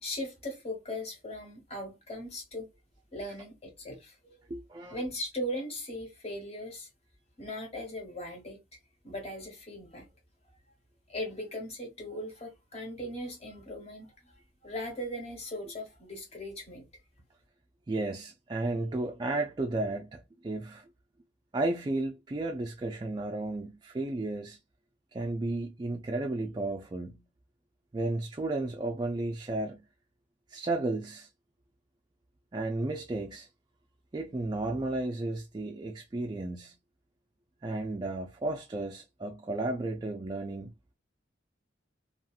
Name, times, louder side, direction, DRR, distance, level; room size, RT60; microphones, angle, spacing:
voice 1, 0.0-2.7 3.1-4.4 4.9-6.9 7.4-8.8 9.0-10.1 11.1-16.9, left 1 dB, 35° left, 1.3 m, -39 dB
voice 2, 4.5-5.0 17.9-20.9 21.5-24.6 25.1-27.2 27.9-29.9 30.5-31.3 32.5-33.5 34.1-36.7 37.6-40.7, right 2 dB, 25° right, 0.3 m, -33 dB
2.9 x 2.8 x 2.3 m
head